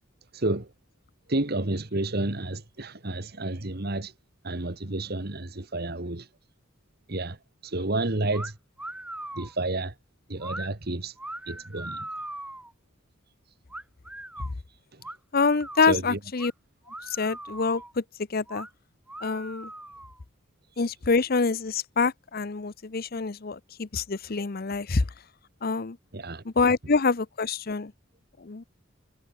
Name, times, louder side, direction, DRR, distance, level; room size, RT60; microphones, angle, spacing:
voice 1, 0.3-0.7 1.3-4.1 4.4-6.3 7.1-7.4 7.6-8.6 9.3-9.9 10.3-11.2 11.5-12.1 14.9-15.0 15.8-16.2 26.1-26.4, right 2 dB, 50° right, 1.7 m, -30 dB
sound 1, 8.3-8.5 8.8-9.5 10.4-10.7 11.2-12.7 13.7-14.5 15.0-16.0 16.4-16.5 16.9-17.9 18.5-18.7 19.1-20.2, right 1 dB, 5° right, 1.0 m, -40 dB
voice 2, 15.3-16.5 17.2-18.0 18.3-18.7 19.2-19.7 20.8-25.1 25.6-26.0 26.6-27.9 28.4-28.6, left 4 dB, 50° left, 0.7 m, -26 dB
head